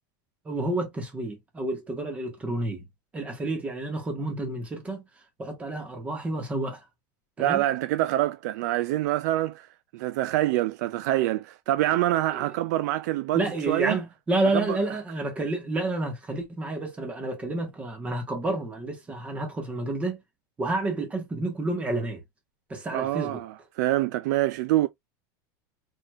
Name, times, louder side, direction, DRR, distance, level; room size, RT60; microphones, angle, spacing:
voice 1, 0.4-2.8 3.1-5.0 5.4-6.8 7.4-7.6 12.3-12.4 13.3-20.2 20.6-22.2 22.7-23.4, right 2 dB, 10° right, 1.6 m, -30 dB
voice 2, 7.4-9.7 9.9-14.0 14.5-14.8 22.9-24.9, right 15 dB, 60° right, 0.5 m, -26 dB
4.7 x 4.1 x 2.4 m
supercardioid pair, 170°, 10 cm